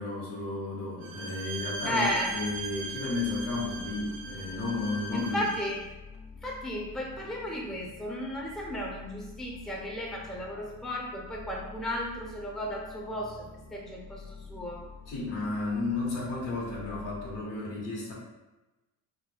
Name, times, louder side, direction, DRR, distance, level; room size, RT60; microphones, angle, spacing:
voice 1, 0.0-5.4 15.1-18.1, left 3 dB, 85° left, -4 dB, 1.1 m, -33 dB
Bowed string instrument, 1.0-5.9, right 3 dB, 60° right, 0.5 m, -39 dB
sound 1, 1.9-17.4, left 4 dB, 45° left, 0.7 m, -48 dB
voice 2, 1.9-2.4 5.1-5.8 6.4-14.9, equal, ahead, -2 dB, 0.6 m, -34 dB
2.3 x 2.1 x 3.2 m, 1.0 s
supercardioid pair, 70°, 43 cm